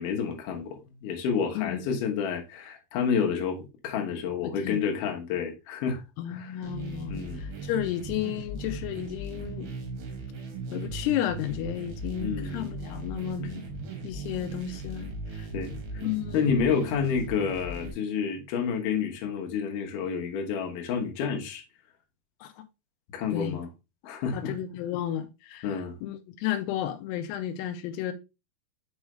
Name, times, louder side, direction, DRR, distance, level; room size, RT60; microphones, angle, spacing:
voice 1, 0.0-6.7 7.1-7.4 12.2-12.7 15.5-15.8 16.3-21.6 23.1-23.7 24.0-24.6 25.6-25.9, left 6 dB, 65° left, 2.4 m, -29 dB
voice 2, 4.4-4.8 6.2-9.7 10.7-13.7 14.0-15.1 15.4-15.5 16.0-16.8 22.4-22.5 23.3-23.6 24.3-25.7 26.0-28.1, left 11 dB, 85° left, 2.6 m, -32 dB
sound 1, 6.6-17.9, right 2 dB, 60° right, 2.7 m, -38 dB
6.3 x 4.8 x 3.2 m
omnidirectional pair, 4.7 m